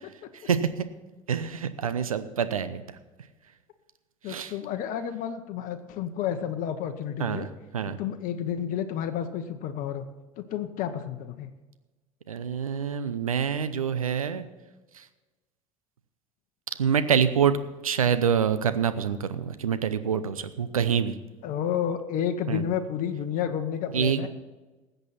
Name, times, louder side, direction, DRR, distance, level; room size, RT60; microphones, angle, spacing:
voice 1, 0.4-0.9 1.3-2.8 4.3-4.5 7.2-7.5 7.7-8.0 12.3-14.4 14.9-15.0 16.8-17.6 17.8-21.2 22.5-22.6 23.9-24.3, right 7 dB, 85° right, 12 dB, 0.8 m, -26 dB
voice 2, 4.2-7.5 8.0-10.0 10.4-11.5 21.4-24.3, left 9 dB, 50° left, 7 dB, 1.1 m, -30 dB
19.5 x 8.0 x 4.3 m, 1.2 s
figure-of-eight pair, 70°, 18 cm